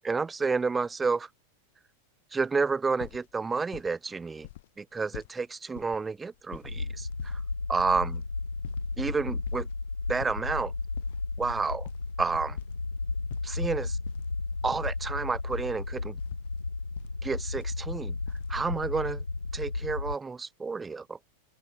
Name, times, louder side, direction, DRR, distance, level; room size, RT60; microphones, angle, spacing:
voice 1, 0.0-1.3 2.3-4.5 4.8-7.4 7.7-8.2 9.0-9.7 10.1-10.7 11.4-11.9 12.2-12.6 13.4-14.0 14.6-16.2 17.2-18.1 18.5-19.2 19.5-21.2, right 4 dB, 15° right, 0.8 m, -30 dB
sound 1, 3.0-4.1 4.4-4.7 4.9-5.3 5.7-6.0 6.3-8.2 8.6-8.8 9.1-9.7 10.1-10.4 10.9-12.8 13.3-14.2 14.5-15.0 15.5-15.7 16.2-17.1 17.5-18.5, left 17 dB, 55° left, 5.4 m, -45 dB
sound 2, 6.6-20.2, left 3 dB, 80° left, 0.9 m, -34 dB
open air
figure-of-eight pair, 90°, 0 cm